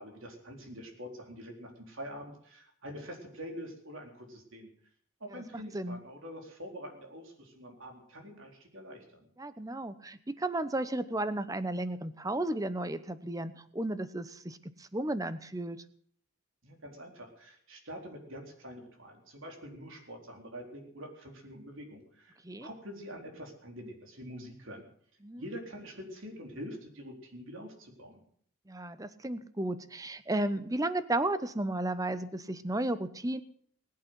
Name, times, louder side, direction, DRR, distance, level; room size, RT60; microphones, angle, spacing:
voice 1, 0.0-4.7 5.2-9.3 16.6-22.3 22.6-24.9 25.4-28.2, equal, 65° right, 2 dB, 4.0 m, -45 dB
voice 2, 9.4-15.8 22.4-22.7 25.2-25.4 28.7-33.4, right 1 dB, 15° right, 13 dB, 0.8 m, -33 dB
20.5 x 8.7 x 8.1 m, 0.63 s
head